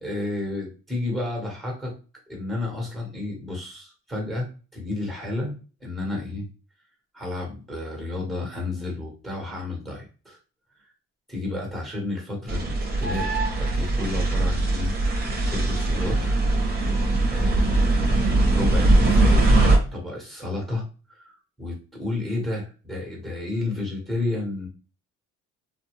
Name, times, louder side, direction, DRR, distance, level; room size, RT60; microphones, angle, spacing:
voice 1, 0.0-1.9 2.3-6.4 7.1-10.4 11.3-14.9 15.4-16.4 17.3-18.2 18.5-24.7, left 2 dB, ahead, -1 dB, 1.3 m, -31 dB
sound 1, 12.5-19.8, right 2 dB, 30° right, 0.9 m, -21 dB
2.6 x 2.1 x 3.0 m, 0.35 s
cardioid pair, 90°, 30 cm